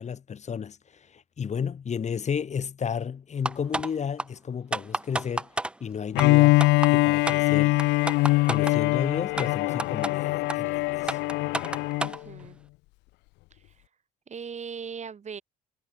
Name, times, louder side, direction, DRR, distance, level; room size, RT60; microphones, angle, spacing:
voice 1, 0.0-5.5 5.8-6.6 6.9-7.8 8.3-11.2, left 7 dB, 40° left, 2.0 m, -32 dB
sound 1, 3.5-3.9 4.2-4.3 4.7-5.7 6.2-6.3 6.6-6.9 7.3-7.4 7.8-8.8 9.4-9.5 9.8-10.1 10.5-10.6 11.1-12.2, right 2 dB, 5° right, 0.3 m, -29 dB
Bowed string instrument, 6.1-12.2, left 22 dB, 75° left, 0.6 m, -23 dB
voice 2, 12.0-12.6 13.5-13.8 14.3-15.4, right 6 dB, 40° right, 4.6 m, -39 dB
supercardioid pair, 70°, 18 cm